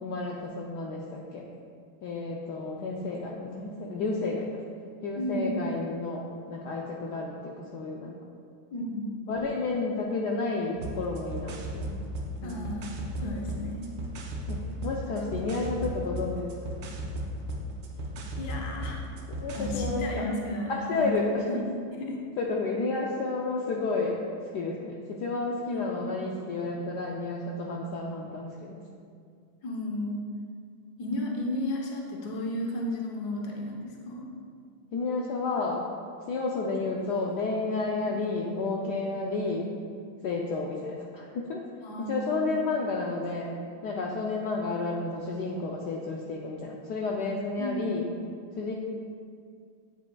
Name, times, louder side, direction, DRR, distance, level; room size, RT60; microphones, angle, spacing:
voice 1, 0.0-1.4 2.0-4.5 5.0-6.2 6.5-8.1 9.3-12.0 12.4-12.6 14.5-16.5 19.3-20.2 20.7-21.6 22.4-24.2 24.5-28.8 34.9-35.9 36.3-39.7 40.2-41.6 42.0-43.5 43.8-48.1 48.6-48.7, left 3 dB, 75° left, -1 dB, 0.9 m, -31 dB
voice 2, 5.2-5.6 8.7-9.2 12.4-13.8 15.1-15.2 18.4-19.0 19.5-21.6 21.9-22.2 25.7-25.8 26.1-26.2 29.6-30.2 31.0-34.3 38.0-38.2 41.8-42.6 47.6-48.0, left 1 dB, 55° left, -1 dB, 1.4 m, -33 dB
sound 1, 10.7-20.0, equal, 65° right, 1.3 m, -36 dB
9.2 x 7.5 x 2.3 m, 2.2 s
omnidirectional pair, 2.4 m